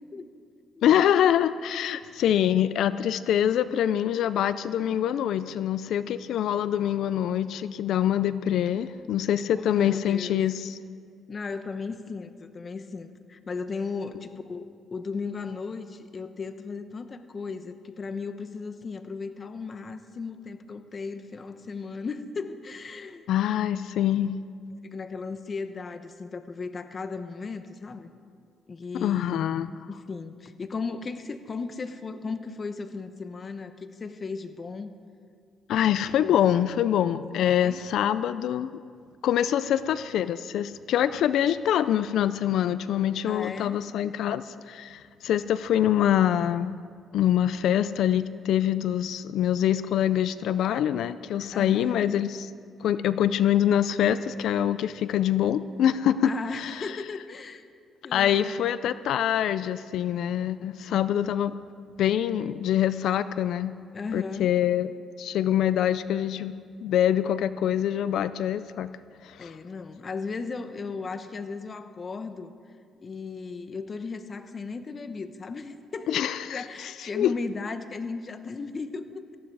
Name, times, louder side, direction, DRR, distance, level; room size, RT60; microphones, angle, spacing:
voice 1, 0.8-10.8 23.3-24.3 29.0-29.7 35.7-38.7 39.2-46.7 47.1-52.5 52.8-56.3 56.6-56.9 58.1-61.5 62.0-63.7 64.1-64.9 65.2-68.9 69.2-69.5 76.1-76.6 77.1-77.3, left 10 dB, 80° left, 14 dB, 0.4 m, -25 dB
voice 2, 9.5-10.4 11.3-23.3 24.8-28.1 28.7-29.4 29.9-34.9 37.4-37.8 43.3-43.8 51.5-52.1 56.2-57.6 58.0-58.7 63.9-64.5 69.4-72.5 73.0-79.4, left 4 dB, 40° left, 10 dB, 1.0 m, -36 dB
18.0 x 14.5 x 4.8 m, 2.1 s
cardioid pair, 90°, 0 cm